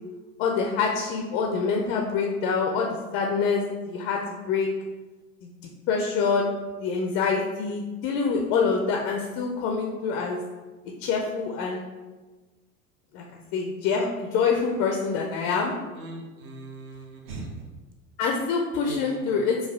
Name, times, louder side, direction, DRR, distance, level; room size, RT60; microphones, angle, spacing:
voice 1, 0.4-4.7 5.4-5.5 5.9-6.5 6.8-10.4 11.0-11.8 13.1-13.2 13.5-15.7 18.2-19.7, left 5 dB, 30° left, 1 dB, 0.4 m, -26 dB
voice 2, 15.9-17.7 18.9-19.4, right 3 dB, 45° right, 1 dB, 0.9 m, -39 dB
4.6 x 2.3 x 3.3 m, 1.2 s
figure-of-eight pair, 75°, 44 cm